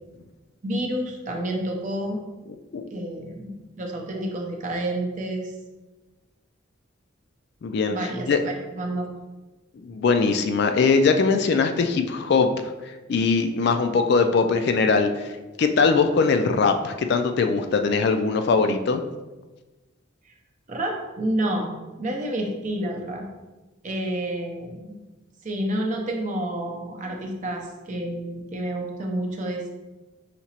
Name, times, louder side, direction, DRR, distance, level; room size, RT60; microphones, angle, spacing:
voice 1, 0.6-2.2 2.9-5.5 7.9-9.2 20.3-20.4 20.7-23.3 23.8-25.0 25.4-29.7, right 1 dB, 40° right, 1 dB, 0.5 m, -29 dB
voice 2, 7.6-8.4 9.8-15.3 15.6-19.0, left 4 dB, 55° left, 7 dB, 0.3 m, -21 dB
5.8 x 2.8 x 2.8 m, 1.2 s
head